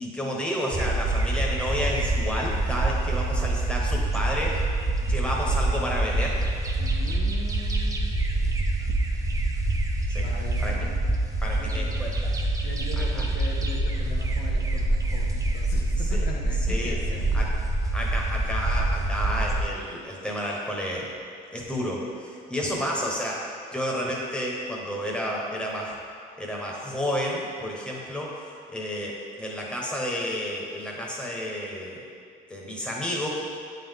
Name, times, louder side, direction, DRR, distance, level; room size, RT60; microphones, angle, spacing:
voice 1, 0.0-4.5 5.0-6.5 10.1-10.2 10.6-10.7 11.4-12.1 13.0-13.1 16.1-16.3 16.7-17.0 17.3-17.5 17.9-21.0 21.5-23.4 23.7-25.9 26.4-32.0 32.5-33.3, equal, 5° left, -3 dB, 1.1 m, -31 dB
sound 1, 0.7-19.6, right 2 dB, 20° right, 0.6 m, -26 dB
voice 2, 6.8-8.2 10.2-11.0 11.6-12.2 12.6-17.6 22.7-23.2, left 3 dB, 70° left, 0 dB, 0.8 m, -40 dB
8.3 x 3.8 x 3.6 m, 2.3 s
cardioid pair, 110°, 17 cm